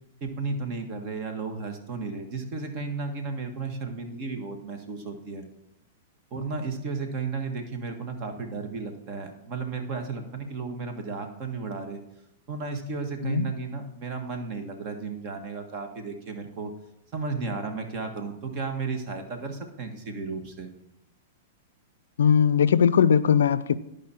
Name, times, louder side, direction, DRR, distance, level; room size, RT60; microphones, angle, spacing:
voice 1, 0.2-5.4 6.3-12.0 12.5-16.7 17.1-20.7, right 4 dB, 45° right, 1.6 m, -33 dB
voice 2, 22.2-23.8, left 7 dB, 80° left, 0.4 m, -20 dB
11.5 x 5.1 x 4.4 m
hypercardioid pair, 115°, 0 cm